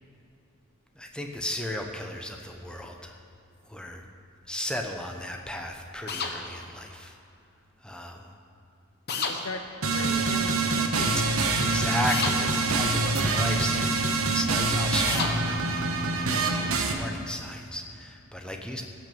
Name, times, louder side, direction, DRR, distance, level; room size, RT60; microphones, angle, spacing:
voice 1, 0.9-3.2 3.6-4.0 4.5-7.2 7.8-8.3 9.3-9.5 10.7-18.8, left 1 dB, 5° left, 2 dB, 0.8 m, -35 dB
sound 1, 6.1-6.3 9.1-9.4 12.1-12.4 15.1-15.3, left 5 dB, 50° left, 1.0 m, -30 dB
voice 2, 9.2-12.0, left 3 dB, 75° left, 6 dB, 0.6 m, -39 dB
sound 2, 9.8-16.9, right 3 dB, 75° right, 1.1 m, -25 dB
16.0 x 6.2 x 6.9 m, 2.6 s
head